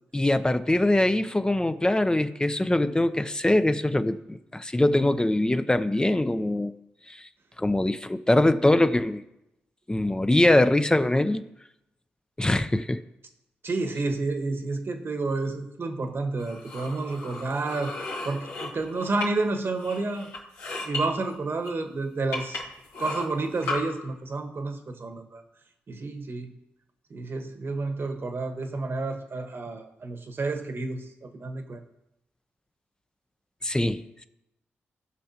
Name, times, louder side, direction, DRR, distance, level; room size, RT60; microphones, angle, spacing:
voice 1, 0.1-6.7 7.1-7.2 7.6-9.2 9.9-11.5 12.4-13.0 33.6-34.2, left 1 dB, 15° left, 10 dB, 0.6 m, -23 dB
voice 2, 13.6-18.0 18.2-20.3 20.8-22.6 23.0-25.4 25.9-26.5 27.1-31.8, right 3 dB, 50° right, 5 dB, 1.3 m, -30 dB
sound 1, 16.4-19.5 19.8-21.0 21.6-21.7 22.3-23.8, left 3 dB, 90° left, 2.1 m, -35 dB
17.0 x 5.6 x 2.9 m, 0.88 s
supercardioid pair, 45°, 5 cm